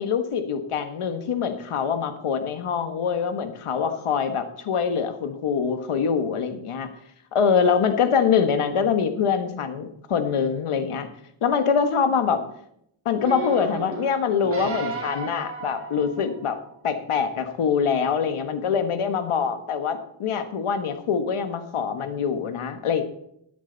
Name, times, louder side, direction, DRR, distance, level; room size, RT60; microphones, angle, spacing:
voice 1, 0.0-6.9 7.3-11.1 11.4-12.5 13.0-16.6 16.8-23.0, left 6 dB, 80° left, 9 dB, 1.6 m, -24 dB
sound 1, 13.2-16.7 17.3-17.4, right 3 dB, 25° right, 3.3 m, -33 dB
13.0 x 10.5 x 4.0 m, 0.74 s
cardioid pair, 80°, 50 cm